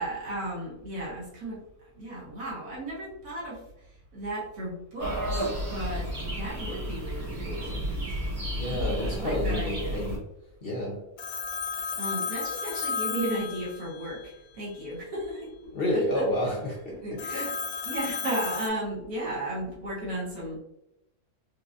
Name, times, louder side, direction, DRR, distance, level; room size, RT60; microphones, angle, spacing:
voice 1, 0.0-1.6 1.9-3.9 4.1-7.8 8.6-10.0 11.9-16.3 17.0-17.5 17.8-20.6, right 1 dB, 75° right, -6 dB, 1.6 m, -35 dB
sound 1, 5.0-10.2, equal, 60° right, 1.8 m, -32 dB
voice 2, 8.5-10.2 10.6-11.0 15.7-17.5, left 1 dB, 55° left, -2 dB, 0.7 m, -30 dB
Telephone, 11.2-14.3 17.2-18.7, left 6 dB, 75° left, 1.0 m, -33 dB
4.5 x 2.5 x 2.5 m, 0.85 s
omnidirectional pair, 1.6 m